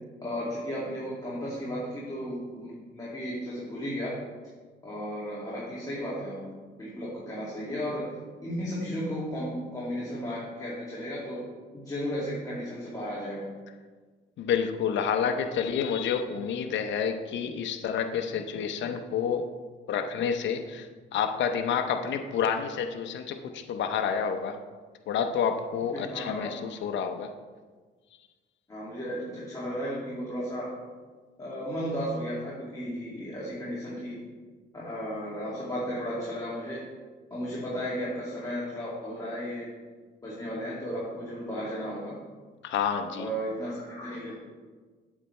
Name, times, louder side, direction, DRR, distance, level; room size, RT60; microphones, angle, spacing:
voice 1, 0.2-4.2 4.8-6.5 6.8-8.1 8.4-11.4 11.7-13.5 25.9-26.5 28.7-30.8 31.4-34.2 34.7-36.9 37.3-39.7 40.2-42.2 43.2-44.3, equal, 20° left, -7 dB, 2.2 m, -34 dB
voice 2, 14.4-19.5 19.9-24.6 25.1-27.3 42.6-43.3, left 7 dB, 70° left, 6 dB, 0.7 m, -29 dB
8.3 x 8.0 x 3.2 m, 1.4 s
cardioid pair, 90°, 20 cm